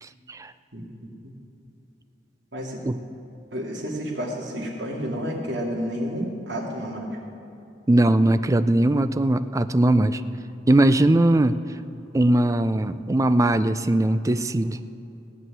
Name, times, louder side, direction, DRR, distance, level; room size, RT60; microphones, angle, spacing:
voice 1, 0.0-0.5 2.8-3.0 7.9-10.2 10.7-11.6 12.1-14.8, right 1 dB, 20° right, 12 dB, 0.4 m, -20 dB
voice 2, 0.7-1.3 2.5-2.8 3.5-7.2, equal, 80° right, -1 dB, 2.5 m, -31 dB
16.5 x 6.3 x 9.2 m, 2.9 s
head